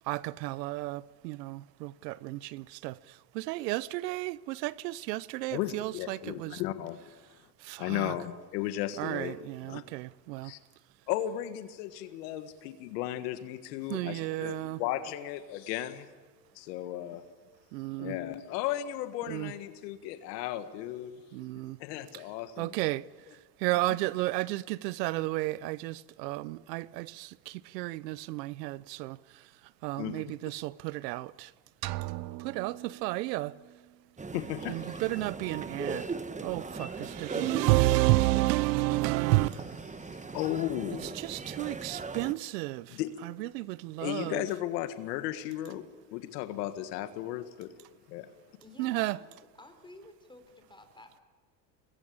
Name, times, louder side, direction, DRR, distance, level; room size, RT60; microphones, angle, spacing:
voice 1, 0.1-3.0 3.3-6.6 7.6-8.1 9.0-10.5 13.9-14.8 17.7-18.1 19.3-19.5 21.3-21.8 22.6-23.0 23.6-29.2 29.8-31.5 32.4-33.5 34.7-36.1 36.4-39.6 41.2-43.0 43.2-44.4 48.8-49.2, right 19 dB, 90° right, 0.7 m, -31 dB
voice 2, 5.5-7.0 7.8-9.8 10.4-10.6 11.1-16.1 16.6-17.2 18.0-21.2 21.8-22.7 30.0-30.4 34.3-35.0 40.0-41.2 42.9-43.1 43.5-43.6 44.0-45.8 46.1-47.7 48.1-48.3, left 13 dB, 85° left, 1.7 m, -35 dB
sound 1, 31.8-33.8, right 18 dB, 50° right, 0.8 m, -40 dB
sound 2, 34.2-42.3, right 4 dB, 15° right, 1.2 m, -39 dB
voice 3, 48.6-50.4 50.7-51.2, left 2 dB, 10° left, 4.6 m, -52 dB
24.0 x 21.0 x 8.6 m
supercardioid pair, 90°, 48 cm